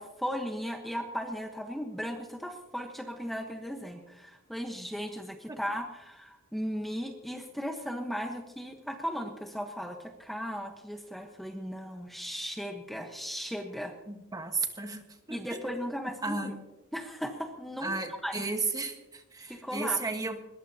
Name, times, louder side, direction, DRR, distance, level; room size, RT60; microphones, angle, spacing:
voice 1, 0.0-13.9 15.3-16.5 16.9-17.9 18.2-18.4 19.5-20.0, equal, ahead, 3 dB, 1.1 m, -36 dB
voice 2, 14.1-15.6 16.2-16.6 17.8-20.4, right 3 dB, 15° right, 5 dB, 1.4 m, -34 dB
21.5 x 21.0 x 2.9 m, 1.0 s
head